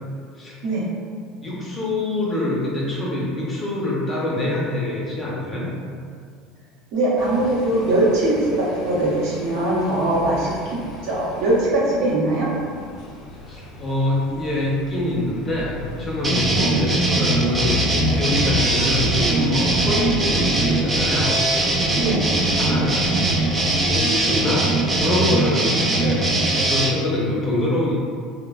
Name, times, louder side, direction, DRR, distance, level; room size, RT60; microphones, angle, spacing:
voice 1, 1.4-5.7 13.4-21.4 22.5-23.1 23.8-26.3 26.6-28.0, left 1 dB, 30° left, -5 dB, 0.7 m, -25 dB
voice 2, 6.9-12.5 16.5-16.7 22.0-22.3 25.5-25.6, right 1 dB, 65° right, -6 dB, 0.8 m, -21 dB
sound 1, 7.2-25.2, left 1 dB, 60° left, 0.4 m, -35 dB
sound 2, 16.2-26.9, right 2 dB, 25° right, 0.4 m, -21 dB
3.1 x 2.0 x 2.3 m, 2.2 s
supercardioid pair, 105°, 0 cm